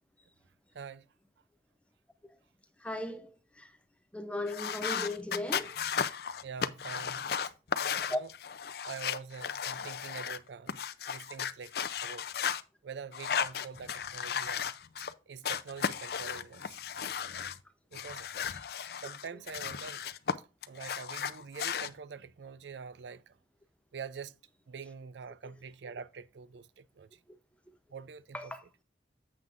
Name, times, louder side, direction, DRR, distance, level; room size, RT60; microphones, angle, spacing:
voice 1, 2.8-3.7 4.1-5.8 8.1-8.2 9.6-9.8 18.5-18.6 25.4-25.5 28.3-28.7, left 1 dB, 5° left, 0.7 m, -37 dB
sound 1, 4.5-10.4 10.7-12.6 13.1-15.1 15.4-17.6 17.9-20.3 20.6-21.9, left 7 dB, 60° left, 0.5 m, -35 dB
voice 2, 6.4-7.3 8.1-8.3 8.8-10.8 11.1-11.7 12.0-12.2 12.8-14.7 15.3-16.8 17.9-18.3 19.0-20.0 20.7-23.3 23.9-24.3 24.7-27.1 27.9-28.5, right 5 dB, 80° right, 0.5 m, -45 dB
9.3 x 7.6 x 2.5 m
head